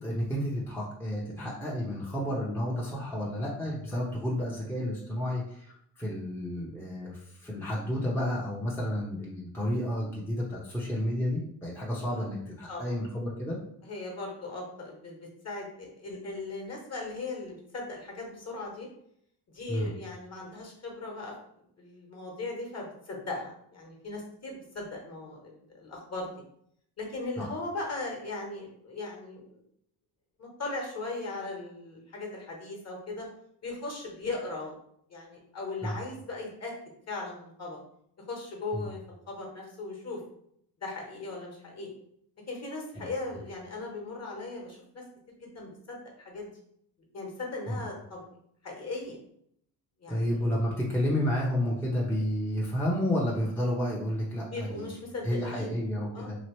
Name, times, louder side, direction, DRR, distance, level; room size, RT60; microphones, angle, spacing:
voice 1, 0.0-13.6 19.7-19.9 27.4-27.5 35.8-35.9 38.7-38.9 43.0-43.1 47.7-47.8 50.1-54.8 55.2-56.4, left 1 dB, 5° left, -5 dB, 0.7 m, -31 dB
voice 2, 12.7-13.0 13.8-18.9 19.5-21.3 21.8-26.3 27.0-29.6 30.4-33.3 33.6-34.8 35.1-36.7 37.1-37.8 38.3-39.0 39.3-40.2 40.8-41.9 42.5-46.5 47.1-48.2 48.6-49.2 50.0-50.4 54.5-55.8 56.1-56.3, left 2 dB, 35° left, 0 dB, 1.1 m, -38 dB
3.0 x 2.5 x 3.0 m, 0.70 s
cardioid pair, 85°, 45 cm